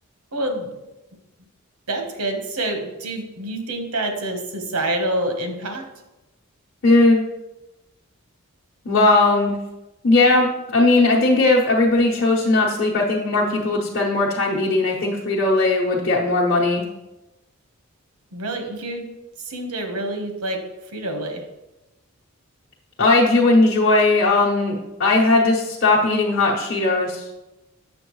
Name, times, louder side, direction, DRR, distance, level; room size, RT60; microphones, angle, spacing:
voice 1, 0.3-0.7 1.9-5.9 18.3-19.1 19.4-21.5, right 1 dB, 85° right, 4 dB, 1.2 m, -27 dB
voice 2, 6.8-7.2 8.8-9.5 10.0-16.8 23.0-27.2, left 2 dB, 50° left, -4 dB, 1.0 m, -18 dB
7.6 x 6.9 x 3.1 m, 0.99 s
head